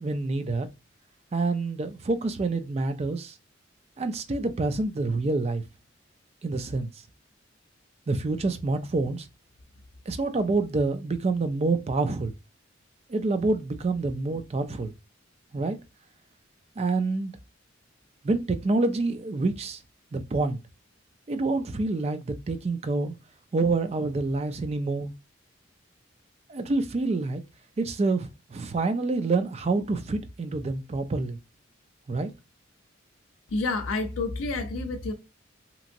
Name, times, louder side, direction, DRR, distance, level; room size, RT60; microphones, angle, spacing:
voice 1, 0.0-0.7 1.3-3.3 4.0-5.6 6.4-6.9 8.1-9.3 10.1-12.3 13.1-14.9 15.5-15.8 16.8-17.3 18.2-19.8 20.1-20.6 21.3-23.2 23.5-25.1 26.5-27.4 27.8-31.4 32.1-32.3, right 3 dB, 30° right, 0.4 m, -27 dB
voice 2, 33.5-35.1, left 3 dB, 85° left, 0.4 m, -29 dB
2.9 x 2.6 x 2.5 m
head